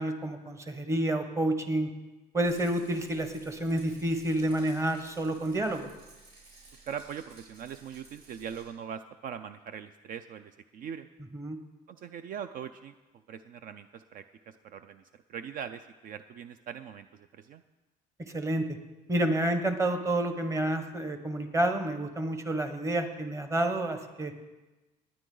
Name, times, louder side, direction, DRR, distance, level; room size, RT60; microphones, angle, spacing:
voice 1, 0.0-1.9 2.3-5.9 11.3-11.6 18.2-18.7 19.1-24.3, right 1 dB, 15° right, 7 dB, 1.2 m, -29 dB
Rattle, 2.4-8.7, right 3 dB, 70° right, 5.6 m, -55 dB
voice 2, 6.9-11.1 11.9-12.9 13.3-15.0 15.3-17.6, right 8 dB, 55° right, 11 dB, 0.5 m, -41 dB
19.0 x 10.0 x 3.9 m, 1.1 s
cardioid pair, 130°, 17 cm